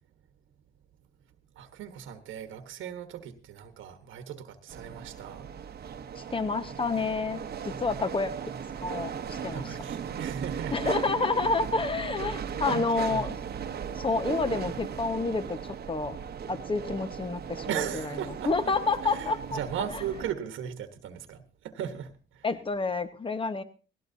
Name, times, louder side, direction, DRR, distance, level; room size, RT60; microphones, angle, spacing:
voice 1, 1.5-5.5 9.5-11.2 12.7-13.8 17.7-18.7 19.1-22.4, right 9 dB, 80° right, 8 dB, 1.4 m, -37 dB
sound 1, 4.7-20.3, right 7 dB, 50° right, 1.1 m, -37 dB
voice 2, 6.3-8.3 8.8-9.8 10.7-13.4 13.9-16.2 16.5-19.6 19.9-20.0 22.4-23.6, left 4 dB, 25° left, 11 dB, 1.4 m, -29 dB
18.0 x 16.0 x 2.8 m, 0.34 s
cardioid pair, 90°, 20 cm